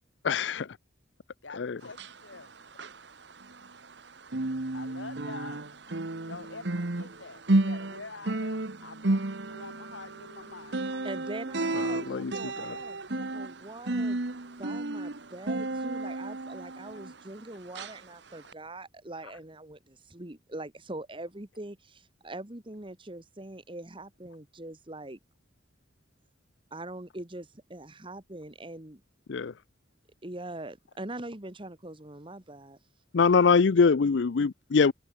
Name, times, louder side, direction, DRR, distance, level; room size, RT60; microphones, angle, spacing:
voice 1, 0.2-0.8 1.5-1.8 11.7-12.8 29.3-29.5 33.1-34.9, left 5 dB, 70° left, 0.5 m, -24 dB
voice 2, 1.4-2.5 4.7-5.7 6.1-10.8, left 3 dB, 90° left, 2.3 m, -46 dB
sound 1, 1.8-4.0 4.3-17.4 17.7-18.0 18.5-18.6, right 2 dB, 65° right, 1.3 m, -32 dB
voice 3, 11.0-14.2 14.6-25.2 26.7-29.0 30.2-32.8, right 2 dB, 25° right, 1.8 m, -42 dB
head